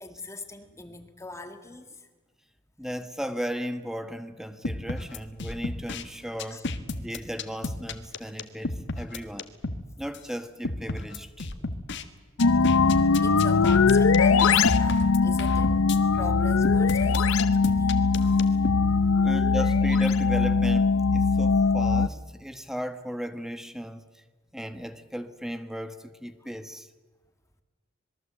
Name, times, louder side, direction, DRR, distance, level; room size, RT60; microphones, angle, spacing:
voice 1, 0.0-2.1 6.5-6.6 11.6-11.7 12.8-15.8 16.1-17.9 18.2-18.5 19.1-19.3, left 2 dB, 15° left, 1.8 m, -42 dB
voice 2, 2.8-9.5 10.0-11.5 19.2-24.2 24.5-26.9, equal, ahead, 1.3 m, -36 dB
sound 1, 4.6-6.0 6.4-9.8 10.1-10.2 10.6-12.0 12.4-16.0 16.6-18.8, left 2 dB, 60° left, 1.6 m, -32 dB
sound 2, 12.4-22.1, left 4 dB, 85° left, 0.7 m, -21 dB
26.5 x 21.5 x 8.0 m
head